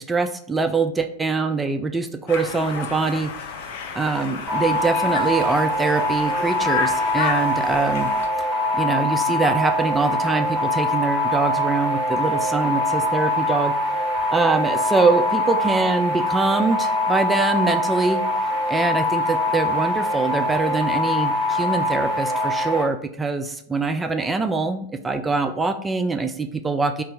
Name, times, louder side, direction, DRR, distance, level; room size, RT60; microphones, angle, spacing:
voice 1, 0.0-3.3 3.9-8.1 8.7-13.7 14.3-18.2 18.7-27.0, right 3 dB, 10° right, 7 dB, 0.3 m, -23 dB
Conversation, 2.3-8.3, left 5 dB, 50° left, 0.6 m, -31 dB
sound 1, 4.5-22.8, left 1 dB, 30° right, 1.0 m, -23 dB
4.2 x 2.5 x 3.4 m, 0.71 s
figure-of-eight pair, 90°, 0 cm